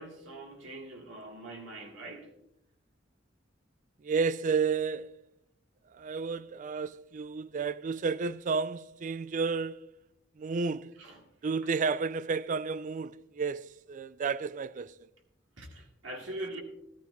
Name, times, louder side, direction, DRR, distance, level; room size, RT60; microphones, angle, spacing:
voice 1, 0.0-2.3 11.0-11.2 15.6-16.6, right 1 dB, 75° right, 2.2 m, -42 dB
voice 2, 4.0-5.2 5.9-9.9 10.4-11.0 11.4-15.1, right 5 dB, 40° right, 0.3 m, -32 dB
14.5 x 13.5 x 2.6 m
head